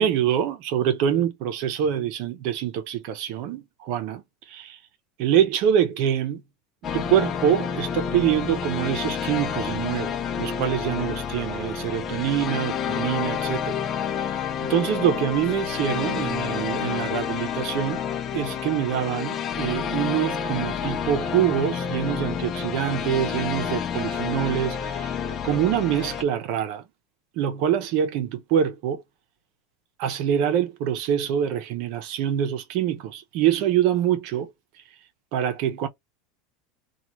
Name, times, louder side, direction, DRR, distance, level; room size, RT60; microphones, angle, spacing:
voice 1, 0.0-4.8 5.2-6.4 6.9-13.8 14.1-14.4 14.7-18.0 18.3-25.1 25.4-26.8 27.4-29.0 30.0-34.5 35.3-35.9, right 10 dB, 60° right, 0.7 m, -25 dB
sound 1, 6.8-26.2, left 7 dB, 35° left, 0.5 m, -29 dB
3.0 x 2.4 x 2.3 m
supercardioid pair, 120°, 0 cm